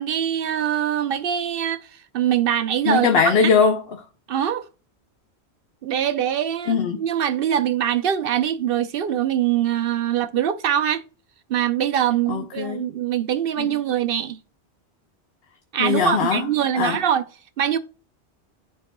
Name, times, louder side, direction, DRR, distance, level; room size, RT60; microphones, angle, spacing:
voice 1, 0.0-1.8 2.1-3.5 4.3-4.7 5.8-11.0 11.5-14.4 15.7-17.2 17.6-17.8, right 10 dB, 65° right, 0.7 m, -23 dB
voice 2, 2.9-4.0 6.7-7.0 12.3-12.9 13.6-13.7 15.8-16.5 16.7-17.0, left 6 dB, 65° left, 0.9 m, -21 dB
10.5 x 4.6 x 2.2 m
omnidirectional pair, 1.1 m